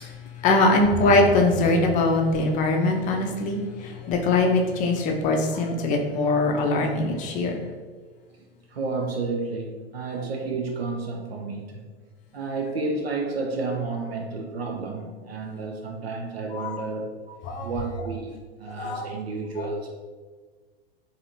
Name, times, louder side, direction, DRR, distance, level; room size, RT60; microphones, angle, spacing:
voice 1, 0.0-7.6 16.5-16.8 17.5-17.7 18.8-19.1 19.6-19.7, left 2 dB, 25° left, 2 dB, 0.5 m, -22 dB
voice 2, 8.4-11.9 12.3-19.9, right 3 dB, 75° right, 1 dB, 0.5 m, -31 dB
3.9 x 2.6 x 2.8 m, 1.5 s
figure-of-eight pair, 95°, 31 cm